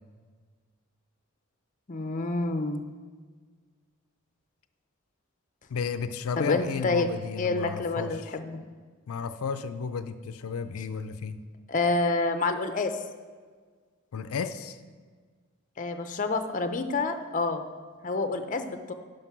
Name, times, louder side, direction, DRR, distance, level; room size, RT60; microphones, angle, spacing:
voice 1, 1.9-2.8 6.4-7.1 7.4-8.6 11.7-13.0 15.8-17.7 18.0-18.9, left 3 dB, 35° left, 8 dB, 0.6 m, -28 dB
voice 2, 5.7-8.2 9.1-11.4 14.1-14.8, left 5 dB, 85° left, 10 dB, 0.4 m, -33 dB
11.0 x 5.2 x 6.0 m, 1.5 s
head